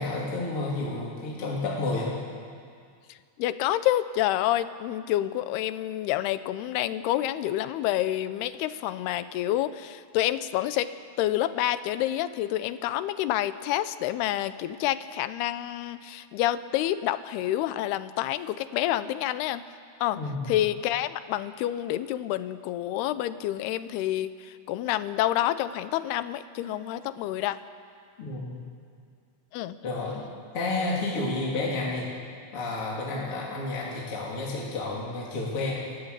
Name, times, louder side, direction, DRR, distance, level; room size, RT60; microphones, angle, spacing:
voice 1, 0.0-2.1 20.2-20.5 28.2-28.6 29.8-30.3 30.5-32.1 32.5-35.8, left 2 dB, 35° left, -4 dB, 3.6 m, -30 dB
voice 2, 3.1-10.9 11.2-19.6 20.0-27.6 29.5-29.8, left 13 dB, 85° left, 13 dB, 2.7 m, -28 dB
29.5 x 15.0 x 8.2 m, 2.2 s
omnidirectional pair, 4.5 m